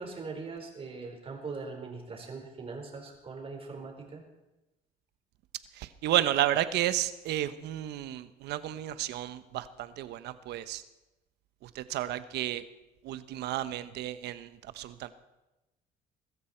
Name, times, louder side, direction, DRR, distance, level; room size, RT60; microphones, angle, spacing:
voice 1, 0.0-4.2, right 4 dB, 35° right, 2 dB, 4.7 m, -41 dB
voice 2, 5.7-10.8 11.6-12.6 13.0-15.1, right 13 dB, 80° right, 13 dB, 1.0 m, -32 dB
22.0 x 14.0 x 4.5 m, 1.0 s
cardioid pair, 110°, 17 cm